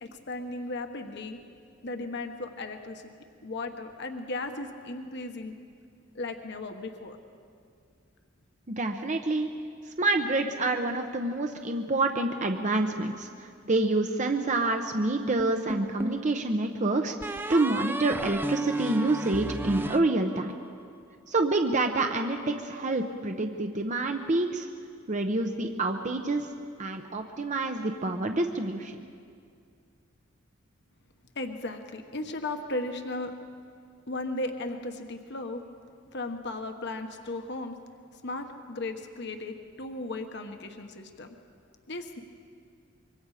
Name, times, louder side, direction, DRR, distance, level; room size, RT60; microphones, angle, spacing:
voice 1, 0.0-1.4 1.8-3.1 3.4-5.6 6.1-7.2 31.3-33.3 34.1-35.6 36.1-37.8 38.1-41.3 41.9-42.2, left 2 dB, 60° left, 5 dB, 1.3 m, -36 dB
voice 2, 8.7-9.5 9.8-20.6 21.3-24.7 25.1-26.5 26.8-29.0, right 2 dB, 40° right, 5 dB, 0.8 m, -27 dB
sound 1, 15.4-16.3 17.2-20.7, right 1 dB, 10° right, 0.5 m, -34 dB
25.5 x 23.5 x 5.0 m, 2.3 s
head